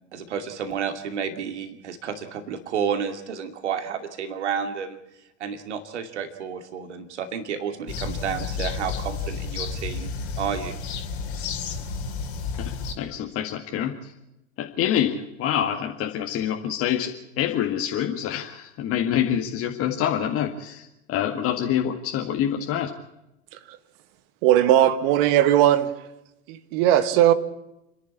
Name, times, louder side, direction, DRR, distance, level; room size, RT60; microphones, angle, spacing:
voice 1, 0.1-5.0 5.4-10.7, right 7 dB, 70° right, 2.5 m, -31 dB
sound 1, 7.9-12.9, left 5 dB, 60° left, 3.2 m, -31 dB
voice 2, 12.6-14.1 14.6-17.1 17.4-22.9, left 10 dB, 40° left, 1.9 m, -26 dB
voice 3, 24.4-25.9 26.5-27.3, right 12 dB, 50° right, 1.8 m, -18 dB
29.5 x 11.5 x 8.6 m
figure-of-eight pair, 80°, 36 cm